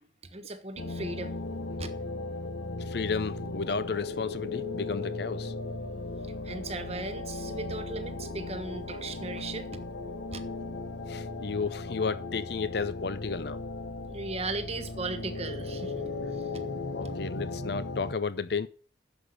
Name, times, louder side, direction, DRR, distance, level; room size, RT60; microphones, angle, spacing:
voice 1, 0.2-1.4 1.8-1.9 6.4-9.8 10.3-10.4 14.1-16.6, right 3 dB, 30° right, 1.3 m, -37 dB
sound 1, 0.8-18.1, left 3 dB, 80° left, 1.2 m, -37 dB
voice 2, 2.8-5.5 11.1-13.6 16.9-18.7, left 4 dB, 55° left, 0.6 m, -32 dB
10.0 x 7.2 x 6.7 m
head